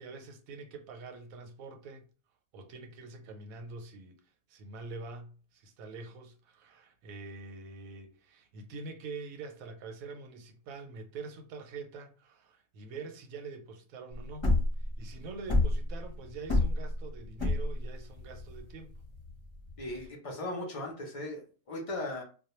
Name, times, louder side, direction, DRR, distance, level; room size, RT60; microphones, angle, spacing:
voice 1, 0.0-2.0 2.5-4.2 4.5-14.5 14.8-18.9 19.8-20.1, right 4 dB, 90° right, 1.0 m, -45 dB
sound 1, 14.1-20.1, left 2 dB, 30° left, 0.6 m, -28 dB
voice 2, 19.8-21.4 21.7-22.2, left 1 dB, 60° left, 0.3 m, -37 dB
2.2 x 2.1 x 2.9 m
omnidirectional pair, 1.4 m